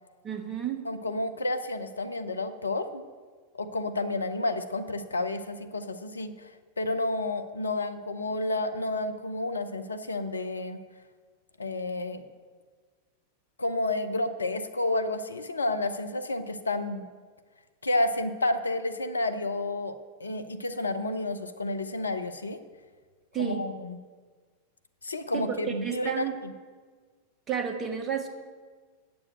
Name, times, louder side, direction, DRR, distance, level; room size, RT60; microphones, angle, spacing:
voice 1, 0.2-0.8 23.3-23.7 25.3-25.5 25.8-26.4 27.5-28.3, right 8 dB, 25° right, 5 dB, 1.2 m, -31 dB
voice 2, 0.9-3.0 3.5-6.5 6.8-10.8 11.6-12.2 13.6-17.1 17.8-22.6 23.4-24.0 25.0-26.5, left 2 dB, 75° left, 9 dB, 0.6 m, -30 dB
8.6 x 6.9 x 7.6 m, 1.5 s
figure-of-eight pair, 90°, 0 cm